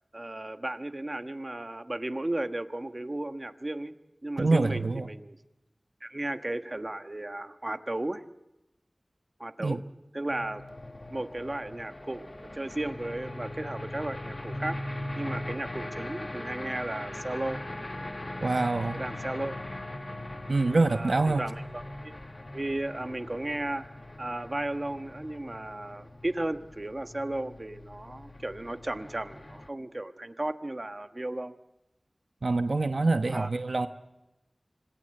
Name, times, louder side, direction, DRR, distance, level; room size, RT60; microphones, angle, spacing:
voice 1, 0.1-3.9 4.2-5.4 6.0-8.2 9.4-9.8 10.1-10.6 11.1-14.8 15.2-17.6 18.9-19.6 20.9-22.2 22.5-31.6 33.3-33.5, right 1 dB, 40° right, 8 dB, 1.3 m, -35 dB
voice 2, 4.4-5.1 9.6-9.8 18.4-19.0 20.5-21.5 32.4-33.9, right 3 dB, 75° right, 8 dB, 1.0 m, -25 dB
sound 1, 10.3-29.7, left 1 dB, 40° left, 1.5 m, -40 dB
26.5 x 18.5 x 7.8 m, 0.93 s
wide cardioid pair, 45°, 0 cm